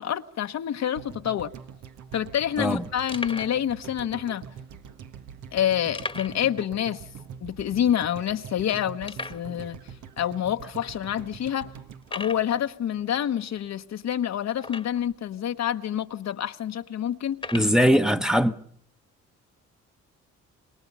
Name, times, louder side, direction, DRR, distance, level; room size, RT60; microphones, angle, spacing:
voice 1, 0.0-1.5 2.1-4.4 5.5-7.0 7.4-9.8 10.2-11.7 12.1-17.4, left 10 dB, 60° left, 1.1 m, -27 dB
sound 1, 1.0-13.2 13.4-13.5, right 7 dB, 75° right, 1.6 m, -44 dB
sound 2, 1.6-1.7 1.9-2.1 2.6-2.7 3.1-3.6 4.4-4.5 5.9-6.5 6.8-6.9 7.4-7.5 8.0-8.1 9.1-9.5 10.3-10.4 11.0-11.1 12.0-12.5 14.6-15.1 15.9-16.0 17.3-17.8, left 3 dB, 15° left, 1.4 m, -36 dB
voice 2, 17.5-18.5, equal, ahead, 1.1 m, -20 dB
27.0 x 21.5 x 5.5 m
cardioid pair, 90°, 30 cm